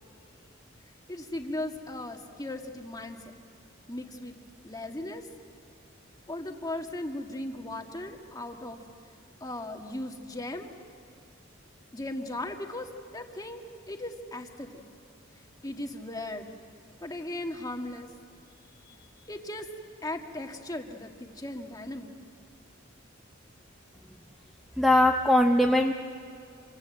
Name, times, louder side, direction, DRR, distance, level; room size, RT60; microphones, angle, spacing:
voice 1, 1.1-3.4 3.9-4.4 4.6-5.2 6.3-8.8 9.4-10.7 11.9-13.6 13.9-14.7 15.6-16.5 17.0-18.1 19.3-19.7 20.0-22.1, left 1 dB, 20° left, 4 dB, 1.7 m, -37 dB
voice 2, 24.8-25.9, left 1 dB, ahead, 1 dB, 0.8 m, -21 dB
26.5 x 24.5 x 8.0 m, 2.4 s
head